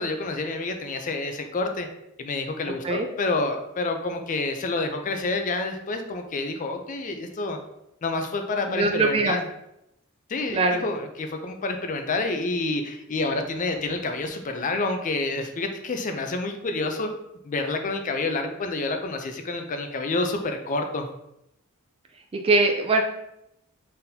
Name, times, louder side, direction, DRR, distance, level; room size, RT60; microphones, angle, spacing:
voice 1, 0.0-1.9 2.2-7.6 8.0-9.4 10.3-17.1 17.4-21.1, left 3 dB, 35° left, 5 dB, 0.4 m, -28 dB
voice 2, 8.7-9.4 10.5-10.8 22.4-23.0, right 3 dB, 25° right, 4 dB, 0.3 m, -21 dB
4.1 x 3.9 x 2.7 m, 0.83 s
head